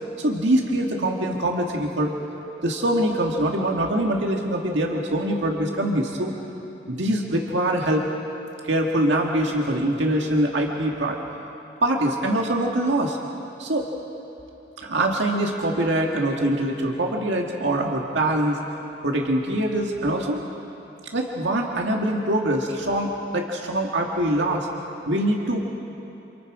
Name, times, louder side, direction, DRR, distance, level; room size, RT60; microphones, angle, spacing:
voice 1, 0.2-2.1 2.6-6.3 6.9-8.1 8.6-11.2 11.8-13.2 13.6-13.9 14.8-18.6 19.0-20.5 21.1-24.7 25.1-25.6, right 1 dB, 75° right, 0 dB, 1.9 m, -23 dB
29.5 x 27.5 x 4.9 m, 2.9 s
head